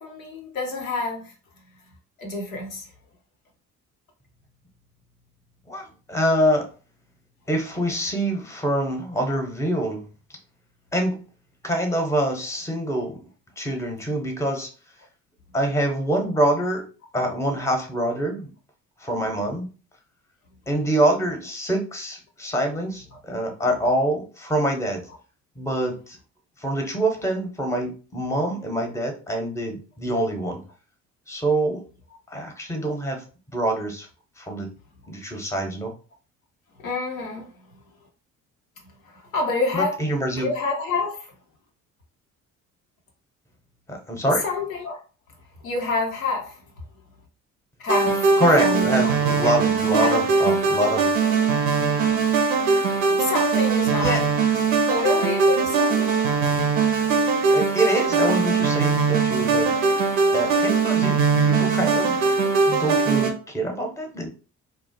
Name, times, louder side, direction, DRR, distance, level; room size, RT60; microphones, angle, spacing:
voice 1, 0.0-1.3 2.2-2.9 36.8-37.5 39.1-40.0 40.4-41.3 44.2-45.0 45.6-46.6 47.8-49.6 49.9-50.2 51.0-51.1 53.1-54.2 54.8-56.2, left 3 dB, 90° left, 0.6 m, -28 dB
voice 2, 5.7-6.7 7.5-10.1 10.9-11.2 11.6-13.2 13.6-14.7 15.5-16.8 17.1-18.5 19.0-19.7 20.7-25.1 25.6-26.2 26.6-30.6 31.3-31.8 32.3-34.1 34.4-34.7 35.1-35.9 39.7-40.5 43.9-44.4 48.4-51.1 53.8-54.2 57.5-60.0 60.3-62.2 62.7-64.3, right 1 dB, 5° left, 0.7 m, -25 dB
sound 1, 47.9-63.3, right 5 dB, 75° right, 0.6 m, -21 dB
2.5 x 2.0 x 2.6 m
figure-of-eight pair, 50°, 40 cm